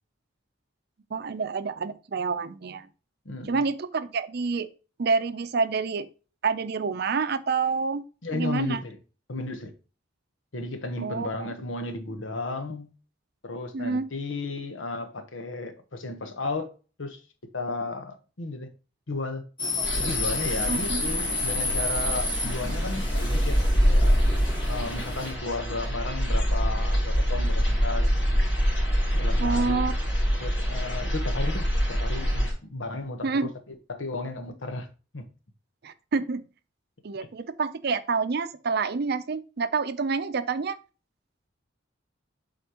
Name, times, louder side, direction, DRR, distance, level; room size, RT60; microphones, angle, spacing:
voice 1, 1.1-2.9 3.5-4.7 5.0-6.1 6.4-8.0 8.3-8.8 11.0-11.5 13.7-14.1 20.7-21.1 22.4-22.7 29.4-29.9 33.2-33.5 35.8-36.4 37.0-40.8, right 4 dB, 55° right, 0.5 m, -28 dB
voice 2, 3.2-3.6 8.2-9.0 9.3-9.7 10.5-12.9 13.4-16.7 17.0-17.2 17.5-18.7 19.1-19.4 20.0-24.2 24.7-28.1 29.1-29.9 30.4-34.9 35.1-35.3, left 3 dB, 90° left, 1.1 m, -34 dB
sound 1, 19.6-25.3, left 3 dB, 25° left, 1.5 m, -31 dB
sound 2, 19.8-32.5, equal, 75° left, 3.2 m, -25 dB
7.9 x 4.2 x 2.9 m
head